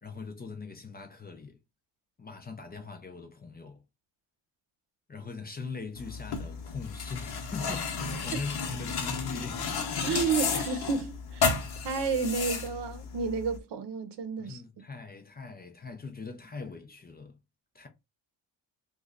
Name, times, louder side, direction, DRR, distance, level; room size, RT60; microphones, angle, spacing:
voice 1, 0.0-1.6 2.2-3.8 5.1-9.7 14.4-17.4 17.7-17.9, left 4 dB, 25° left, 0.4 m, -41 dB
sound 1, 5.9-13.6, left 5 dB, 60° left, 0.9 m, -33 dB
voice 2, 10.0-11.6 11.8-14.6, right 5 dB, 70° right, 0.8 m, -31 dB
3.1 x 2.4 x 3.6 m
wide cardioid pair, 175°, 43 cm